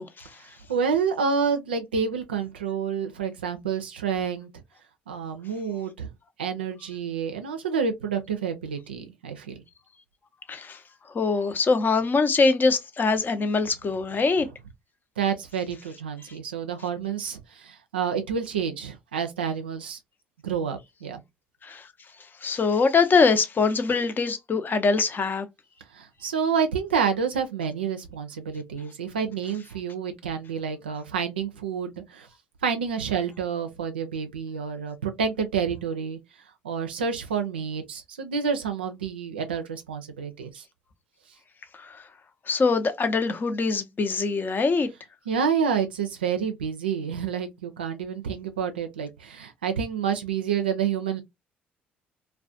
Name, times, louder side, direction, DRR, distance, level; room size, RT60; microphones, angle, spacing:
voice 1, 0.4-4.5 5.1-6.1 6.4-9.6 15.2-20.0 20.4-21.2 25.9-32.3 32.6-36.2 36.6-40.6 45.3-51.2, right 6 dB, 90° right, 0.4 m, -29 dB
voice 2, 10.5-10.8 11.1-14.5 21.6-21.9 22.4-25.5 41.8-42.0 42.5-44.9, left 4 dB, 35° left, 0.6 m, -23 dB
2.3 x 2.1 x 2.6 m
hypercardioid pair, 50°, 5 cm